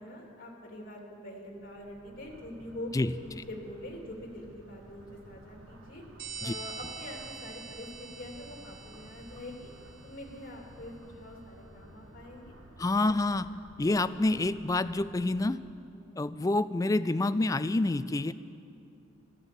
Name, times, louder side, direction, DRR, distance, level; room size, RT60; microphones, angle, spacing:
voice 1, 0.0-2.9 3.2-6.0 6.4-9.7 10.0-12.5, left 1 dB, 45° left, 0 dB, 2.7 m, -44 dB
sound 1, 1.5-15.5, right 1 dB, 80° right, 1.7 m, -53 dB
voice 2, 2.9-3.4 6.4-6.5 12.8-13.5 13.8-15.6 16.2-18.3, left 2 dB, 15° left, 14 dB, 0.3 m, -28 dB
sound 2, 6.2-10.5, right 4 dB, 50° right, 2.0 m, -45 dB
14.0 x 11.0 x 8.3 m, 2.6 s
head